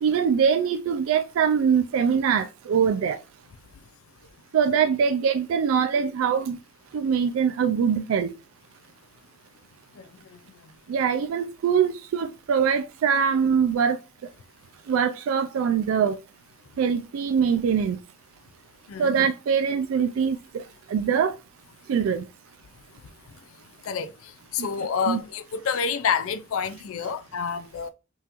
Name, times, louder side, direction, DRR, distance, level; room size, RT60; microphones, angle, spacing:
voice 1, 0.0-3.2 4.5-6.6 6.9-8.3 10.9-14.0 14.9-16.2 16.8-18.0 19.0-21.3 21.9-22.3 24.6-25.2, right 7 dB, 80° right, 0.3 m, -23 dB
voice 2, 18.9-19.3 23.9-24.1 24.5-27.9, left 6 dB, 85° left, 0.4 m, -28 dB
5.4 x 2.4 x 2.9 m
head